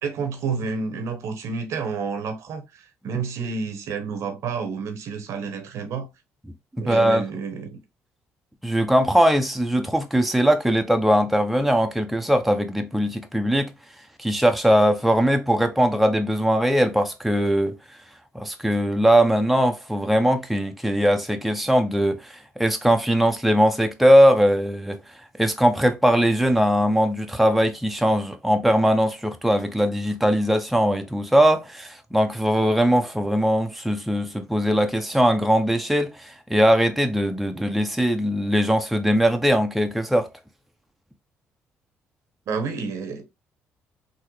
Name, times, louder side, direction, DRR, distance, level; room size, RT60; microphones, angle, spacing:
voice 1, 0.0-6.1 6.8-7.8 42.5-43.3, right 5 dB, 70° right, 0.8 m, -30 dB
voice 2, 6.8-7.2 8.6-13.7 14.2-17.8 18.3-25.0 25.4-40.3, equal, ahead, 0.6 m, -20 dB
3.7 x 2.1 x 3.1 m
supercardioid pair, 70°, 5 cm